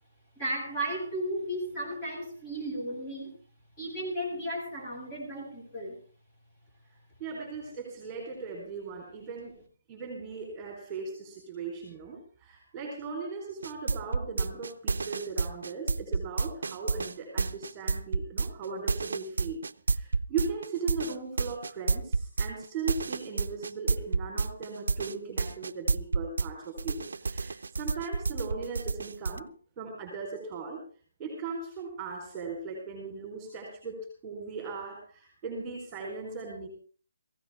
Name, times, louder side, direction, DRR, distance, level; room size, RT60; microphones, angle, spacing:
voice 1, 0.4-3.4 3.8-6.0, right 1 dB, 20° left, -2 dB, 7.4 m, -34 dB
voice 2, 7.2-9.6 9.9-19.6 19.9-29.5 29.8-30.8 31.2-36.7, right 4 dB, 15° right, 2 dB, 4.1 m, -38 dB
sound 1, 13.6-26.5 26.8-29.4, right 4 dB, 75° right, 0.7 m, -29 dB
19.5 x 16.0 x 3.6 m, 0.40 s
hypercardioid pair, 165°, 0 cm